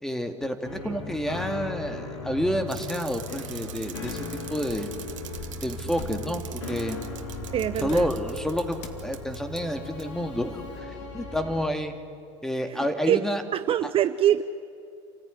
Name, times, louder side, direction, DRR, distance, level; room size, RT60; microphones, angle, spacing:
voice 1, 0.0-4.2 4.5-4.9 5.6-7.1 7.8-10.9 11.1-11.9 12.4-13.4, equal, 5° left, 7 dB, 2.3 m, -29 dB
sound 1, 0.6-11.7, left 3 dB, 90° left, 4.6 m, -38 dB
Bicycle, 2.7-9.6 10.0-10.1, right 12 dB, 85° right, 1.7 m, -44 dB
sound 2, 4.0-6.6 7.3-8.4 8.8-9.1, left 5 dB, 50° left, 2.6 m, -44 dB
voice 2, 7.5-8.1 12.7-13.2 13.5-14.4, right 11 dB, 35° right, 11 dB, 0.7 m, -24 dB
28.5 x 14.5 x 9.9 m, 2.5 s
supercardioid pair, 105°, 16 cm